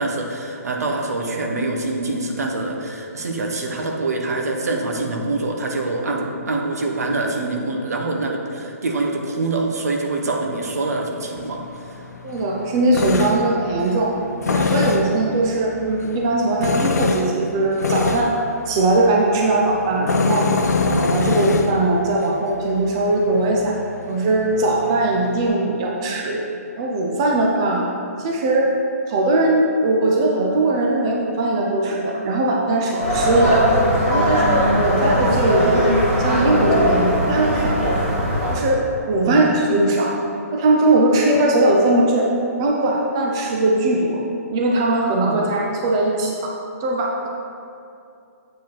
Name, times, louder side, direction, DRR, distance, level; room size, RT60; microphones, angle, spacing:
voice 1, 0.0-12.1 39.2-39.6 45.2-45.4, right 2 dB, 70° right, 2 dB, 1.1 m, -25 dB
Tools, 11.4-25.5, left 4 dB, 90° left, 0.6 m, -26 dB
voice 2, 12.2-14.1 14.5-18.4 18.7-20.5 20.8-23.7 24.1-26.4 26.8-27.9 28.2-28.7 29.1-33.7 34.1-35.9 36.2-38.0 38.5-38.8 39.1-40.2 40.5-42.3 42.6-44.2 44.5-46.5 46.8-47.3, right 2 dB, 15° right, -2 dB, 0.4 m, -20 dB
sound 1, 33.0-38.6, equal, 35° right, 1.8 m, -19 dB
8.0 x 4.8 x 4.6 m, 2.6 s
hypercardioid pair, 175°, 9 cm